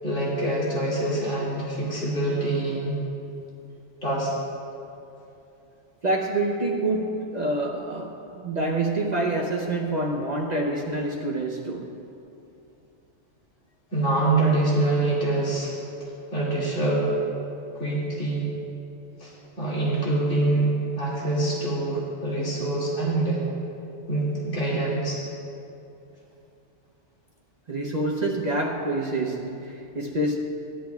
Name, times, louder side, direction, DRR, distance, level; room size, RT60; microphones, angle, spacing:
voice 1, 0.0-3.0 4.0-4.3 13.9-15.7 16.3-17.1 17.7-18.5 19.2-23.4 24.1-25.2, right 2 dB, 80° left, -7 dB, 2.7 m, -25 dB
voice 2, 6.0-11.9 27.7-30.4, right 2 dB, 40° right, -1 dB, 0.7 m, -27 dB
16.5 x 10.5 x 2.3 m, 2.8 s
omnidirectional pair, 1.3 m